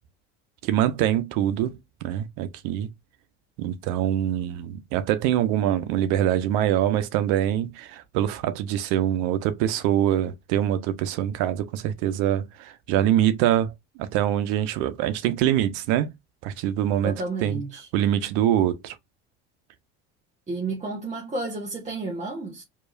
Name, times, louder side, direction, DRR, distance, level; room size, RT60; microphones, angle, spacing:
voice 1, 0.6-2.9 3.6-13.7 14.0-16.1 16.4-17.2 17.4-17.6 17.9-19.0, right 11 dB, 75° right, 0.9 m, -24 dB
voice 2, 17.0-17.9 20.5-22.6, right 2 dB, 25° right, 1.4 m, -31 dB
4.6 x 3.0 x 2.6 m
supercardioid pair, 110°, 30 cm